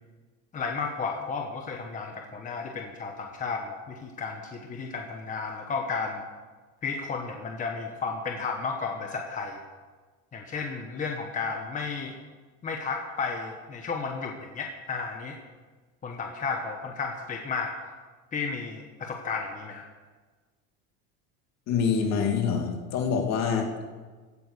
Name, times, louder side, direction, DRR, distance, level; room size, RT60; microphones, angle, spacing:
voice 1, 0.5-6.2 6.8-9.6 10.3-12.1 12.6-15.4 16.0-17.7 18.3-19.9, left 4 dB, 20° left, 2 dB, 1.2 m, -33 dB
voice 2, 21.7-23.7, left 6 dB, 50° left, 3 dB, 2.4 m, -26 dB
16.0 x 8.8 x 6.7 m, 1.4 s
cardioid pair, 150°, 35 cm